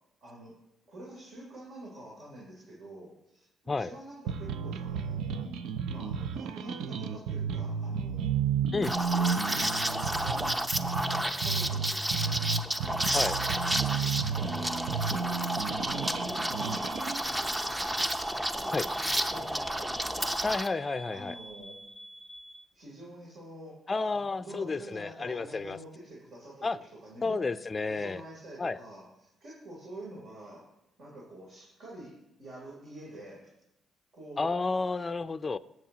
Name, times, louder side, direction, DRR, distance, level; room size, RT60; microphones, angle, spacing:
voice 1, 0.2-0.6 0.9-5.6 5.9-8.4 9.1-13.5 13.9-15.4 15.8-17.0 17.2-17.8 18.5-18.9 19.2-20.4 21.1-21.8 22.7-23.8 24.1-27.6 27.9-30.7 31.0-33.5 34.1-34.6, right 1 dB, 65° right, -5 dB, 3.3 m, -47 dB
sound 1, 4.3-17.2, right 7 dB, 85° right, 0.5 m, -32 dB
Liquid, 8.8-20.7, right 1 dB, 10° right, 0.7 m, -31 dB
sound 2, 15.9-22.6, equal, 40° right, 4.0 m, -48 dB
voice 2, 20.4-21.3 23.9-25.8 26.6-26.8 27.2-28.2 28.6-28.8 34.4-35.6, left 3 dB, 30° left, 12 dB, 0.4 m, -31 dB
19.0 x 7.7 x 2.9 m, 0.86 s
cardioid pair, 90°, 0 cm